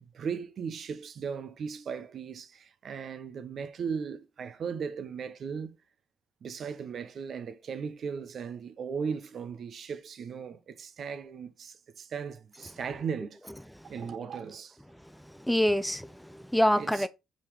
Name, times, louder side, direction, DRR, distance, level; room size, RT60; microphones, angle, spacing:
voice 1, 0.0-5.8 6.4-13.5 13.8-14.8 16.7-17.1, right 6 dB, 55° right, 0.9 m, -37 dB
voice 2, 15.0-17.1, equal, ahead, 0.4 m, -27 dB
5.4 x 5.1 x 4.7 m
cardioid pair, 90°, 0 cm